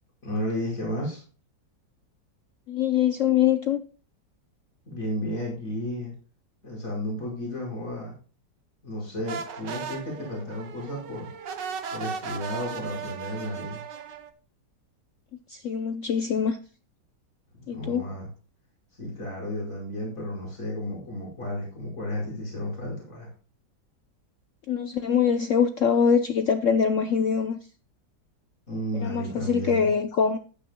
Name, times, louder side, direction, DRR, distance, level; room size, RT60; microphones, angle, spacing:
voice 1, 0.2-1.2 4.9-6.1 6.6-8.2 8.8-11.3 11.9-13.8 17.5-18.3 18.9-23.3 28.7-29.9, left 1 dB, 45° left, 5.4 m, -33 dB
voice 2, 2.7-3.8 15.5-16.6 17.7-18.1 24.7-27.6 29.0-30.4, left 7 dB, 70° left, 0.7 m, -23 dB
sound 1, 9.2-14.3, right 7 dB, 75° right, 1.7 m, -36 dB
14.5 x 9.6 x 2.2 m
omnidirectional pair, 2.0 m